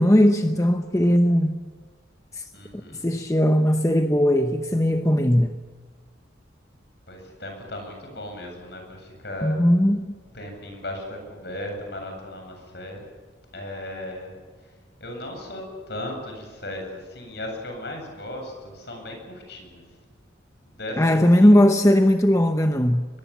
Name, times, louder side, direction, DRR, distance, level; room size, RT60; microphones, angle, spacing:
voice 1, 0.0-1.6 2.3-2.4 3.0-5.6 9.4-10.1 21.0-23.1, equal, 15° left, 0.8 m, -18 dB
voice 2, 2.5-3.0 7.1-9.6 10.3-13.0 13.5-14.3 15.0-19.8 20.7-21.7, left 1 dB, 60° left, 7.9 m, -36 dB
23.0 x 22.0 x 7.3 m
head